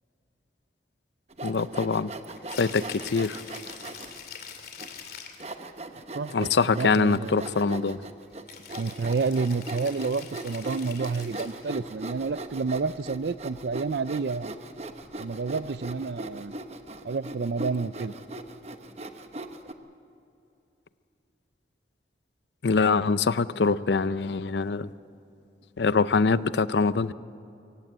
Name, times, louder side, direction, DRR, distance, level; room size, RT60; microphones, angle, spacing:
Sawing, 1.3-4.2 4.8-4.9 5.4-19.7, right 2 dB, 35° right, 1.0 m, -39 dB
voice 1, 1.4-2.1 2.6-3.4 6.3-8.0 22.6-24.9 25.8-27.1, left 4 dB, 80° left, 16 dB, 0.6 m, -24 dB
Rattle (instrument), 2.4-5.5 8.5-11.7, left 7 dB, 60° left, 2.6 m, -44 dB
voice 2, 6.1-7.9 8.8-14.5 15.2-16.5 17.0-18.1, right 4 dB, 70° right, 17 dB, 0.5 m, -30 dB
24.0 x 17.0 x 8.0 m, 2.7 s
head